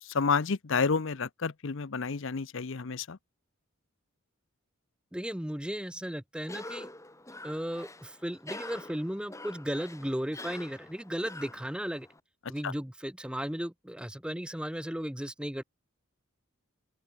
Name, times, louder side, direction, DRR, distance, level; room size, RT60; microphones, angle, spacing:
voice 1, 0.0-3.2 12.6-12.7, left 5 dB, 60° left, 0.7 m, -30 dB
voice 2, 5.1-6.9 7.4-12.1 12.5-15.6, equal, 5° right, 0.8 m, -35 dB
Cough, 6.4-12.2, left 2 dB, 15° left, 4.4 m, -46 dB
open air
head